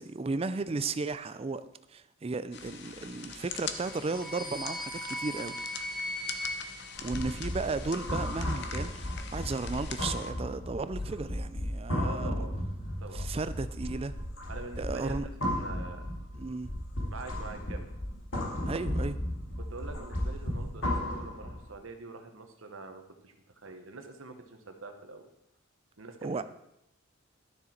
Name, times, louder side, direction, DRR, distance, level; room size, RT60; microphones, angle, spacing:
voice 1, 0.0-1.6 1.9-5.6 7.0-12.3 13.1-14.1 14.8-15.3 16.3-16.7 18.7-19.2 26.2-26.4, right 3 dB, 30° right, 13 dB, 0.4 m, -34 dB
sound 1, 2.5-10.3, left 7 dB, 55° left, 0.8 m, -43 dB
sound 2, 3.6-7.9, equal, ahead, 1.1 m, -39 dB
sound 3, 6.9-21.7, left 1 dB, 70° left, 2.5 m, -35 dB
voice 2, 12.0-12.5 13.0-13.3 14.5-16.0 17.1-17.9 19.6-25.3 26.0-26.4, right 3 dB, 85° right, 5 dB, 1.3 m, -45 dB
12.0 x 6.8 x 4.4 m, 0.84 s
head